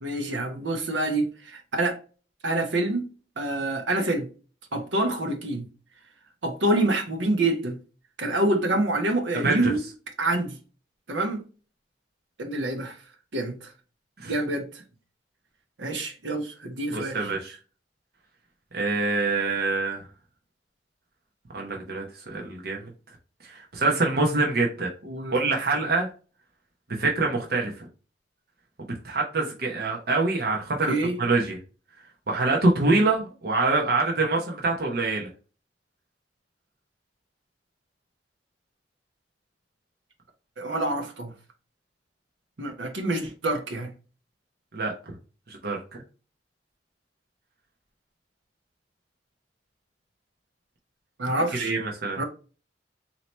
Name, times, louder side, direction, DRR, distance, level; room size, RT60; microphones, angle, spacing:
voice 1, 0.0-2.0 2.4-3.0 3.4-4.3 4.7-5.6 6.4-7.8 8.2-9.8 10.2-10.6 11.1-11.4 12.4-13.0 13.3-13.5 14.3-14.7 15.8-17.2 25.0-25.4 30.9-31.1 40.6-41.3 42.6-43.9 51.2-51.7 52.2-52.3, right 2 dB, 85° right, 1.0 m, -26 dB
voice 2, 9.3-9.7 14.2-14.4 16.9-17.6 18.7-20.0 21.5-22.9 23.5-24.9 25.3-26.1 26.9-27.9 29.0-30.9 31.2-31.6 32.3-35.3 44.7-45.1 45.5-46.0 51.5-52.2, right 3 dB, 55° right, 0.9 m, -25 dB
4.3 x 2.9 x 3.2 m
head